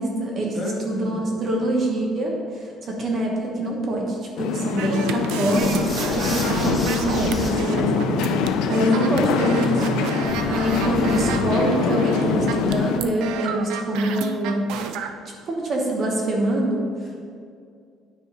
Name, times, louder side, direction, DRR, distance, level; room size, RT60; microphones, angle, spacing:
voice 1, 0.0-8.0 8.7-14.7 15.4-16.9, right 1 dB, 35° right, 0 dB, 1.1 m, -25 dB
voice 2, 0.5-1.6, left 1 dB, 35° left, -3 dB, 1.5 m, -35 dB
sound 1, 4.4-13.0, left 6 dB, 80° left, 0.5 m, -24 dB
sound 2, 4.8-15.1, right 7 dB, 85° right, 0.5 m, -30 dB
sound 3, 5.5-7.5 10.2-11.5, equal, 15° right, 1.9 m, -32 dB
9.1 x 5.0 x 4.1 m, 2.3 s
cardioid pair, 160°, 0 cm